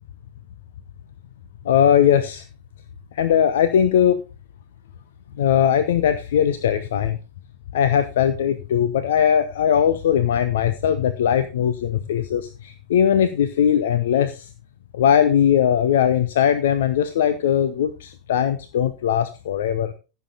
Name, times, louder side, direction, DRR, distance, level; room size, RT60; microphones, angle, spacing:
voice 1, 1.6-2.4 3.1-4.2 5.4-7.2 7.7-14.5 14.9-19.9, left 9 dB, 60° left, 11 dB, 0.9 m, -19 dB
15.5 x 6.9 x 4.0 m, 0.30 s
figure-of-eight pair, 90°, 0 cm